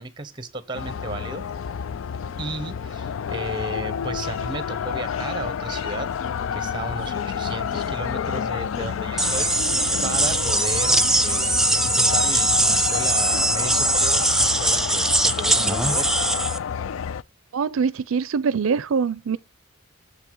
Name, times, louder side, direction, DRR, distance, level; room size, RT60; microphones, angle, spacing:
voice 1, 0.0-1.5 2.4-6.1 6.5-9.5 10.0-16.1, right 2 dB, 25° right, 1.1 m, -34 dB
sound 1, 0.7-17.2, left 7 dB, 75° left, 0.4 m, -29 dB
sound 2, 9.2-16.6, right 2 dB, ahead, 0.4 m, -21 dB
voice 2, 17.5-19.4, right 5 dB, 85° right, 0.5 m, -23 dB
7.6 x 5.6 x 3.8 m
head